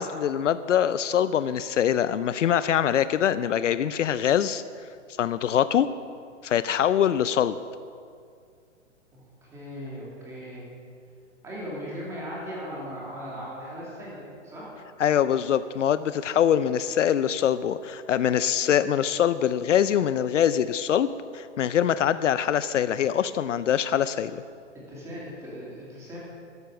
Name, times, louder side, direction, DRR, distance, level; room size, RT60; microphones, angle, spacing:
voice 1, 0.0-4.6 5.2-5.9 6.4-7.6 15.0-24.4, left 9 dB, 70° left, 14 dB, 0.6 m, -23 dB
voice 2, 9.1-10.6 11.4-14.7 24.9-26.2, equal, 5° right, -6 dB, 2.6 m, -38 dB
13.0 x 10.0 x 6.9 m, 2.3 s
hypercardioid pair, 170°, 38 cm